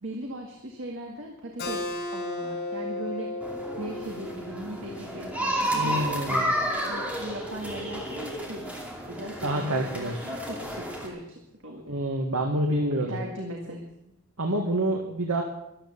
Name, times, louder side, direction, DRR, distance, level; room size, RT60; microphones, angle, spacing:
voice 1, 0.0-1.8 2.1-6.0 6.3-8.6 9.1-12.0 12.9-13.9, right 1 dB, 55° right, 1 dB, 1.9 m, -39 dB
Keyboard (musical), 1.6-6.8, left 2 dB, 50° left, 4.6 m, -36 dB
sound 1, 3.4-11.1, equal, 5° right, 2.6 m, -31 dB
voice 2, 5.7-6.5 9.4-10.3 11.9-13.2 14.4-15.4, right 1 dB, 80° right, 2 dB, 1.7 m, -27 dB
13.5 x 12.0 x 7.2 m, 0.88 s
head